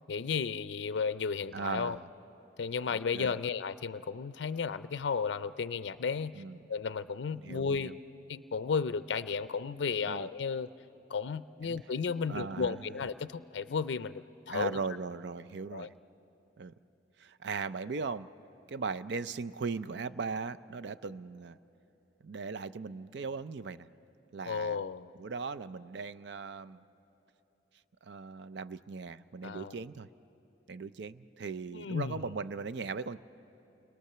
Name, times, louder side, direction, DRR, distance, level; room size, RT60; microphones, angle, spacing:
voice 1, 0.1-2.0 2.6-6.4 6.7-7.9 8.3-10.7 11.1-14.8 15.7-15.9 24.5-25.1 29.4-29.7 31.7-32.2, left 5 dB, 70° left, 14 dB, 0.4 m, -33 dB
voice 2, 1.5-2.1 2.9-3.4 6.3-6.6 7.3-8.0 10.0-10.3 11.6-11.8 12.3-13.0 14.5-15.9 16.6-16.7 17.2-18.3 18.7-21.6 22.2-23.9 24.3-24.8 25.2-26.8 28.0-30.1 30.7-33.2, right 4 dB, 70° right, 14 dB, 0.5 m, -38 dB
29.0 x 22.0 x 6.8 m, 2.9 s
head